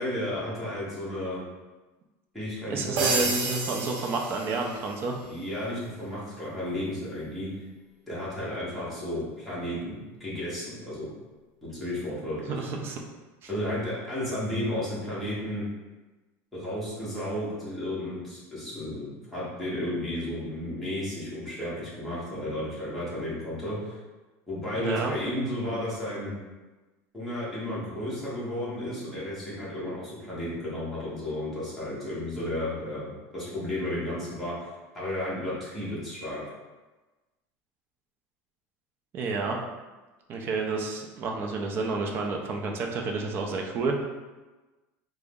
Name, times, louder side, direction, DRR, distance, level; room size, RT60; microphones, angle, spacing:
voice 1, 0.0-1.4 2.3-3.3 5.2-7.5 8.1-11.1 11.6-12.7 13.5-15.6 16.5-24.0 24.5-26.3 27.1-34.5 34.9-36.4, left 1 dB, ahead, -10 dB, 1.1 m, -33 dB
voice 2, 2.7-5.2 12.5-13.0 13.4-13.5 24.7-25.1 39.1-39.6 40.3-44.0, right 3 dB, 30° right, 1 dB, 0.4 m, -30 dB
sound 1, 3.0-5.0, right 3 dB, 65° right, 0.8 m, -30 dB
3.6 x 2.0 x 3.5 m, 1.2 s
cardioid pair, 165°, 7 cm